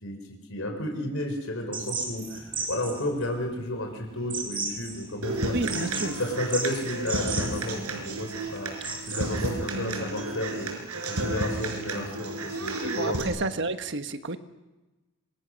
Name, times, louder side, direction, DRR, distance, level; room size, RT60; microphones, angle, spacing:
voice 1, 0.5-5.7 6.2-8.7 9.1-10.7 11.1-13.4, left 1 dB, 65° left, 2 dB, 4.3 m, -32 dB
sound 1, 1.7-9.5, right 3 dB, 25° right, 4.7 m, -36 dB
Human voice / Acoustic guitar, 5.2-13.2, right 2 dB, 85° right, 5.0 m, -32 dB
voice 2, 5.5-6.2 8.8-8.9 12.8-14.4, right 2 dB, 55° right, 9 dB, 1.4 m, -31 dB
26.5 x 25.5 x 6.4 m, 1.1 s
head